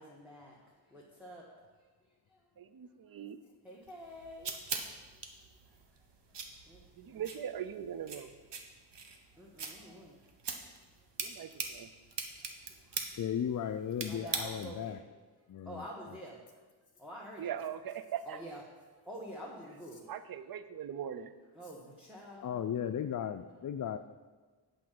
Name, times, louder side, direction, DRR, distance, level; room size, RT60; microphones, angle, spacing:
voice 1, 0.0-2.5 3.0-3.2 3.6-4.6 5.1-6.0 6.3-6.4 6.7-7.2 9.1-10.2 10.5-11.4 12.4-13.2 14.1-15.0 15.4-16.6 16.9-17.5 18.2-20.1 21.5-22.6, equal, 5° right, -4 dB, 1.6 m, -49 dB
voice 2, 2.6-3.4 7.0-8.3 11.2-11.9 17.4-18.4 20.1-21.3, right 9 dB, 55° right, 12 dB, 0.6 m, -40 dB
sound 1, 3.9-14.9, right 5 dB, 80° right, 1.1 m, -43 dB
voice 3, 13.2-15.0 15.5-15.8 22.4-24.0, left 9 dB, 50° left, 8 dB, 0.5 m, -35 dB
8.5 x 5.3 x 7.7 m, 1.3 s
wide cardioid pair, 90°, 42 cm